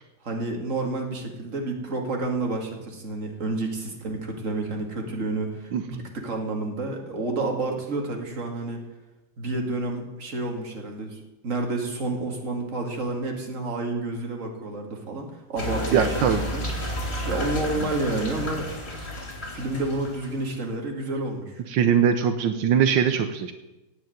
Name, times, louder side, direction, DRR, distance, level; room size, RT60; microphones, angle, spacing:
voice 1, 0.2-5.7 6.0-8.8 9.4-18.7 19.5-21.6, right 2 dB, 45° right, 2 dB, 2.5 m, -30 dB
voice 2, 5.7-6.1 15.9-16.4 21.7-23.5, right 8 dB, 85° right, 8 dB, 1.5 m, -21 dB
sound 1, 15.6-20.5, equal, 35° left, 3.0 m, -31 dB
17.0 x 5.7 x 9.1 m, 1.0 s
omnidirectional pair, 2.0 m